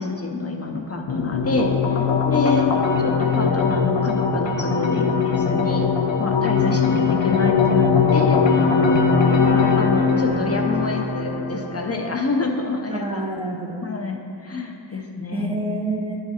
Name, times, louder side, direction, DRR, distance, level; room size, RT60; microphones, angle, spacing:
voice 1, 0.0-2.7 3.0-5.9 6.2-8.8 9.3-13.3 13.8-15.6, left 3 dB, 35° left, 2 dB, 0.6 m, -27 dB
sound 1, 1.1-12.1, left 5 dB, 85° left, 0.7 m, -20 dB
voice 2, 2.2-2.8 6.9-7.0 12.9-13.8 15.3-16.2, right 1 dB, 15° right, 0 dB, 0.5 m, -28 dB
10.5 x 4.8 x 4.2 m, 2.5 s
wide cardioid pair, 100°, 44 cm